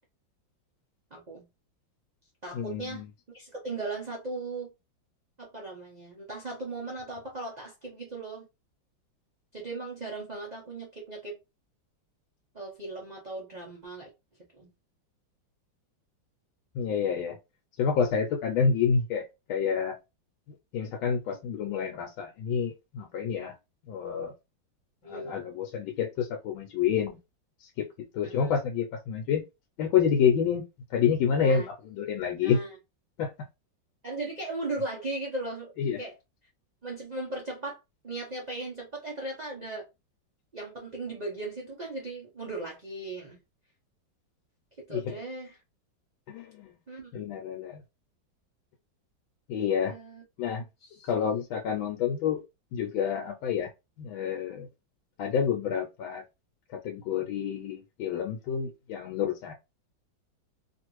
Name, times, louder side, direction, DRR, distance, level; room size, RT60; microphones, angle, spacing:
voice 1, 1.1-1.4 2.4-3.0 3.3-4.7 5.4-8.5 9.5-11.4 12.5-14.1 14.6-14.7 25.0-25.4 28.2-28.5 31.4-31.7 32.4-32.7 34.0-36.2 36.8-37.8 38.0-39.8 40.5-43.4 44.9-45.6 46.9-47.3 49.9-50.2 50.8-51.1, right 2 dB, 75° right, 0.4 m, -37 dB
voice 2, 2.5-3.1 16.7-17.3 17.8-19.2 19.5-20.0 20.7-23.5 23.9-24.3 25.1-27.2 27.8-27.9 28.1-29.4 29.8-30.6 30.9-32.6 33.2-33.3 35.8-36.0 44.9-45.1 46.3-46.8 47.1-47.8 49.5-50.0 50.4-50.6 51.1-52.4 52.7-53.7 54.0-54.7 55.2-56.2 56.7-59.5, left 7 dB, 90° left, 1.4 m, -28 dB
3.1 x 2.5 x 3.0 m
omnidirectional pair, 2.1 m